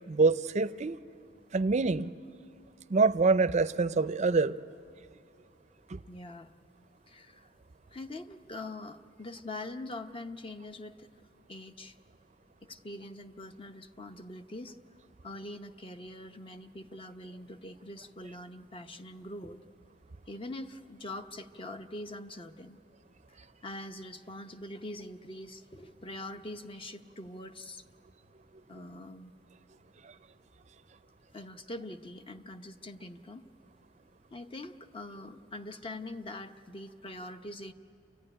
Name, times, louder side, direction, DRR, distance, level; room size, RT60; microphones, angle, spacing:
voice 1, 0.1-1.0 1.5-2.1 2.9-4.6 5.9-6.0 30.0-30.1, right 4 dB, 40° right, 12 dB, 0.5 m, -25 dB
voice 2, 6.1-6.5 7.1-7.5 7.9-11.1 11.5-12.0 12.7-14.8 15.2-19.6 20.3-22.8 23.3-27.8 28.7-29.3 31.3-33.5 34.3-37.7, left 1 dB, 30° left, 8 dB, 0.8 m, -43 dB
28.5 x 14.5 x 10.0 m, 2.4 s
head